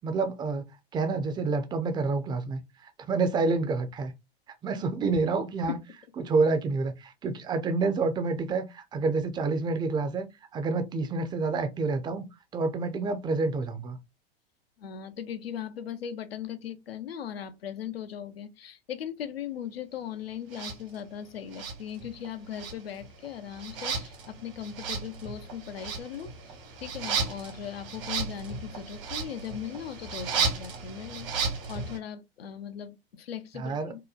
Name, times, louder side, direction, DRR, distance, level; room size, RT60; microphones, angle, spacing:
voice 1, 0.0-0.6 0.9-4.1 4.6-5.8 6.2-10.3 10.5-12.3 12.5-14.0 33.5-33.9, right 3 dB, 15° right, 0.4 m, -28 dB
voice 2, 14.8-26.3 26.8-34.0, left 9 dB, 85° left, 0.5 m, -38 dB
sound 1, 20.5-20.8 21.5-22.3 22.5-32.0, right 5 dB, 65° right, 1.0 m, -34 dB
2.9 x 2.1 x 2.3 m
hypercardioid pair, 100°, 29 cm